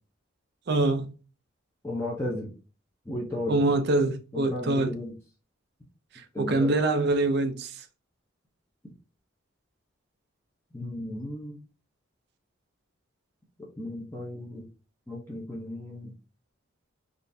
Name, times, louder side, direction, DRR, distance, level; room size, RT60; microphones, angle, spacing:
voice 1, 0.7-1.1 3.5-4.9 6.4-7.7, right 2 dB, 55° right, 0.5 m, -24 dB
voice 2, 1.8-2.5 3.1-3.7 4.3-5.1 6.3-6.8 10.7-11.6 13.8-14.7 15.1-16.1, left 1 dB, 15° left, 0.6 m, -34 dB
3.8 x 2.5 x 2.6 m
head